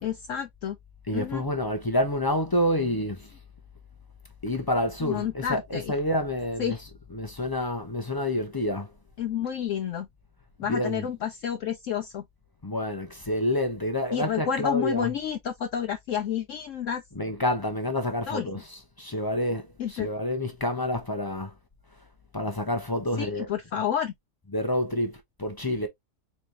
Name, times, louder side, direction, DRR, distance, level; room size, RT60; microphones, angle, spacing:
voice 1, 0.0-0.8 1.1-1.4 5.0-5.9 6.6-6.8 9.2-10.1 10.6-12.2 14.1-17.0 18.3-18.6 19.8-20.1 23.2-24.1, left 9 dB, 65° left, 0.8 m, -30 dB
voice 2, 1.1-3.3 4.4-8.9 10.6-11.1 12.6-15.1 17.1-21.5 22.3-23.5 24.5-25.9, left 1 dB, 35° left, 0.3 m, -28 dB
4.2 x 3.4 x 2.8 m
omnidirectional pair, 1.7 m